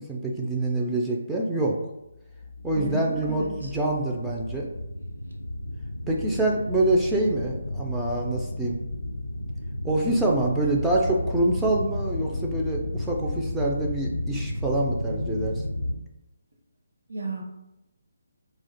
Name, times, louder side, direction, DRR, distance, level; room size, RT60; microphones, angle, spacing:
voice 1, 0.0-1.8 2.6-4.7 6.1-8.8 9.8-15.6, right 2 dB, 5° right, -3 dB, 0.3 m, -26 dB
sound 1, 2.1-16.0, left 1 dB, 85° left, 0.3 m, -33 dB
voice 2, 2.7-3.7 17.1-17.4, right 2 dB, 70° right, 1 dB, 0.8 m, -33 dB
2.4 x 2.1 x 3.9 m, 0.91 s
figure-of-eight pair, 150°, 0 cm